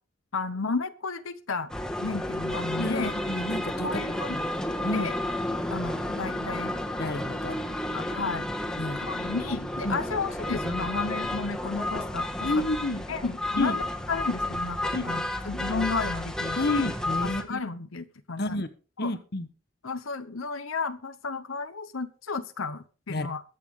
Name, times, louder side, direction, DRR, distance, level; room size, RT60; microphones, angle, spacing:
voice 1, 0.3-1.7 2.0-3.1 3.8-4.4 4.9-5.1 5.7-6.7 7.9-8.5 9.0-12.6 13.1-16.8 17.2-18.6 19.0-19.1 19.8-23.4, left 4 dB, 85° left, 10 dB, 0.9 m, -33 dB
sound 1, 1.7-17.4, left 1 dB, 5° left, 1.6 m, -32 dB
voice 2, 2.8-4.0 4.3-4.4 4.8-5.1 7.0-7.6 8.8-9.0 9.8-10.0 12.4-13.0 13.6-13.8 14.9-15.1 16.6-17.6 18.4-18.7 19.0-19.5 23.1-23.3, left 2 dB, 50° left, 11 dB, 1.2 m, -30 dB
21.5 x 8.3 x 3.6 m, 0.36 s
head